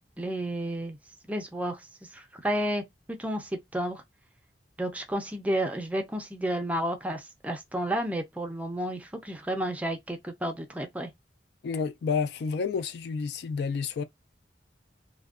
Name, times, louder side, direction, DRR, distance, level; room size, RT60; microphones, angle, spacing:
voice 1, 0.2-1.0 1.3-1.8 2.1-4.0 4.8-11.1, right 1 dB, 10° right, 0.5 m, -31 dB
voice 2, 11.6-14.0, left 5 dB, 65° left, 0.3 m, -30 dB
2.5 x 2.1 x 2.3 m
head